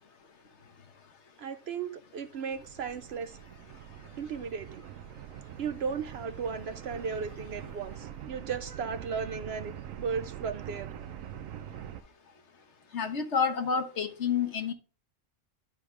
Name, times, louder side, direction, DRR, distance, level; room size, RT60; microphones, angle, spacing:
voice 1, 1.4-3.4 4.2-4.8 5.6-10.9, right 6 dB, 60° right, 0.8 m, -36 dB
sound 1, 2.5-12.0, right 10 dB, 90° right, 1.0 m, -44 dB
voice 2, 12.9-14.7, left 6 dB, 60° left, 1.4 m, -29 dB
11.5 x 4.9 x 3.3 m
omnidirectional pair, 1.3 m